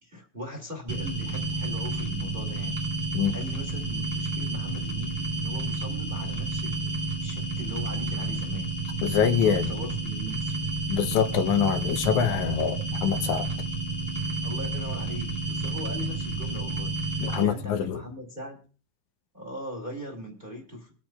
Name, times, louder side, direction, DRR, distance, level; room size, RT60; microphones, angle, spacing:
voice 1, 0.0-2.8 3.3-8.7 9.4-10.6 14.4-16.9 17.3-18.6 19.3-20.9, left 1 dB, 20° right, 2.2 m, -39 dB
sound 1, 0.9-17.4, right 2 dB, 35° right, 1.0 m, -30 dB
voice 2, 9.0-9.7 10.9-13.5 17.2-18.0, left 8 dB, 80° left, 2.2 m, -25 dB
24.0 x 8.7 x 2.3 m
omnidirectional pair, 3.4 m